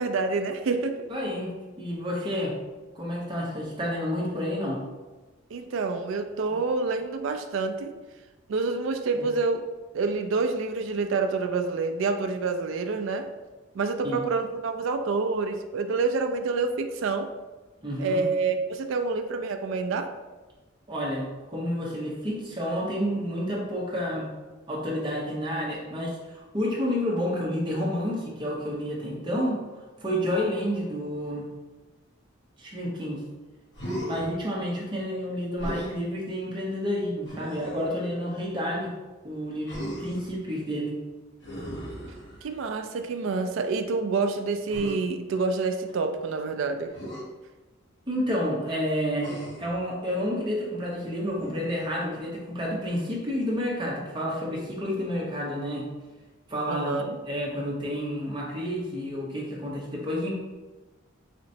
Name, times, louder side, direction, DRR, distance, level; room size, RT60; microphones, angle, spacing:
voice 1, 0.0-1.1 5.5-7.9 8.5-9.7 9.9-13.3 13.7-17.3 18.0-20.1 42.4-46.9 56.7-57.2, right 4 dB, 70° right, 0.3 m, -27 dB
voice 2, 1.1-1.5 1.8-2.6 2.9-4.8 9.2-9.3 14.0-14.2 17.8-18.2 20.9-24.3 24.7-29.6 30.0-31.5 32.6-33.2 34.1-38.9 39.2-41.0 48.1-55.9 56.5-60.4, equal, 25° right, 0.8 m, -30 dB
Human voice, 33.7-34.3 35.6-35.9 37.2-37.9 39.6-40.3 41.4-42.6 44.7-45.0 46.9-47.2 49.2-49.7 51.3-51.8, equal, 55° left, 1.1 m, -36 dB
4.2 x 2.9 x 2.7 m
head